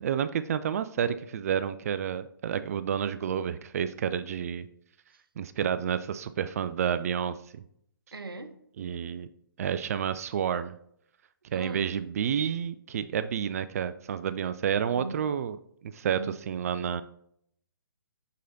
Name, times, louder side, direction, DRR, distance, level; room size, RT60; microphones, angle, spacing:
voice 1, 0.0-4.7 5.4-7.6 8.8-9.3 9.6-10.7 11.5-15.6 15.8-16.2 16.5-17.0, right 8 dB, 40° right, 12 dB, 0.4 m, -30 dB
voice 2, 8.1-8.5 11.5-12.0 14.9-15.2 16.0-16.3, right 2 dB, 80° right, 8 dB, 1.0 m, -39 dB
6.5 x 6.4 x 2.7 m, 0.70 s
figure-of-eight pair, 135°, 12 cm